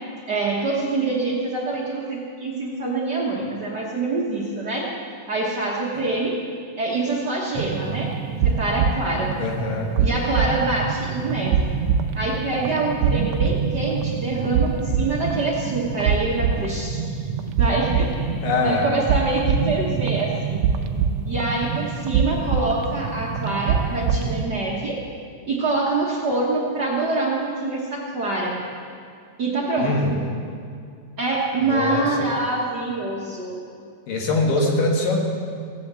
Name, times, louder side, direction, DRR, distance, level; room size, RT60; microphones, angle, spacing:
voice 1, 0.3-4.9 5.3-6.4 6.8-8.1 8.4-9.4 10.0-11.7 12.1-17.1 17.5-18.4 18.6-20.7 21.2-25.0 25.5-28.6 29.4-30.1 31.2-33.6, right 2 dB, 55° right, -3 dB, 1.2 m, -25 dB
sound 1, 7.5-24.4, right 6 dB, 85° right, 1.5 m, -25 dB
voice 2, 9.4-9.9 18.4-18.9 29.8-30.2 31.6-32.3 34.1-35.2, left 2 dB, 85° left, 0 dB, 3.3 m, -23 dB
16.5 x 8.6 x 7.5 m, 2.3 s
omnidirectional pair, 3.8 m